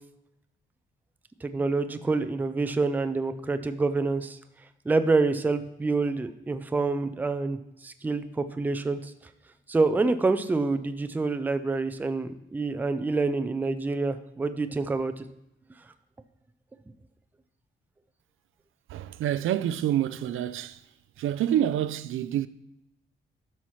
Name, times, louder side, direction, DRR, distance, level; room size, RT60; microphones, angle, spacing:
voice 1, 1.4-4.4 4.9-9.1 9.7-15.2, right 3 dB, 10° right, 0.3 m, -27 dB
voice 2, 18.9-20.8 21.2-22.5, right 11 dB, 80° right, 0.4 m, -27 dB
12.5 x 5.7 x 3.1 m
wide cardioid pair, 165°, 21 cm